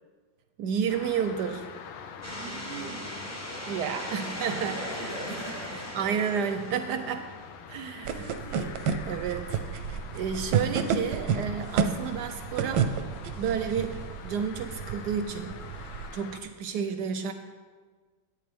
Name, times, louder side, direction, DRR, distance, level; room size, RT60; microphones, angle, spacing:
voice 1, 0.6-1.7 3.7-4.8 5.9-7.3 7.7-8.3 9.1-12.9 13.3-15.6 16.1-17.3, right 7 dB, 70° right, 8 dB, 1.0 m, -31 dB
sound 1, 0.9-16.4, left 6 dB, 90° left, 1.5 m, -45 dB
sound 2, 2.2-7.4, equal, 10° left, 0.7 m, -39 dB
voice 2, 2.3-3.4 4.6-6.5 8.1-8.8, right 1 dB, 35° left, -5 dB, 2.4 m, -42 dB
sound 3, 8.1-16.1, right 6 dB, 90° right, 1.4 m, -31 dB
13.0 x 8.8 x 3.4 m, 1.5 s
omnidirectional pair, 2.1 m